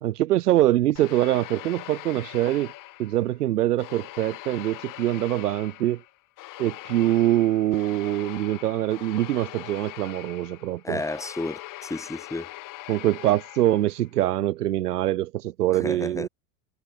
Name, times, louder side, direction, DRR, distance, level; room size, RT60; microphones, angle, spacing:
voice 1, 0.0-2.7 3.0-6.0 6.6-11.0 12.9-16.3, right 14 dB, 90° right, 0.6 m, -24 dB
sound 1, 1.0-3.4 3.8-14.1, left 19 dB, 45° left, 1.3 m, -42 dB
voice 2, 10.8-12.5 15.8-16.3, left 2 dB, 5° left, 1.6 m, -32 dB
hypercardioid pair, 85°, 45 cm